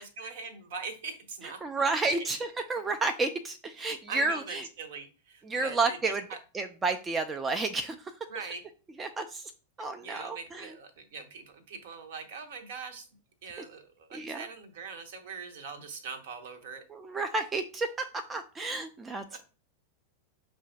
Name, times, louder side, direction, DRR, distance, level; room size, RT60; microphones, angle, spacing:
voice 1, 0.0-2.3 3.8-6.4 8.3-8.6 10.0-13.1 13.4-16.8 19.3-19.4, right 5 dB, 55° right, 7 dB, 0.7 m, -42 dB
voice 2, 1.6-4.7 5.5-6.2 6.5-8.1 8.4-8.5 9.0-9.5 9.8-10.8 13.6-13.7 14.1-14.5 16.9-19.4, right 3 dB, 15° right, 6 dB, 0.3 m, -31 dB
6.1 x 2.2 x 2.7 m, 0.36 s
figure-of-eight pair, 90°, 0 cm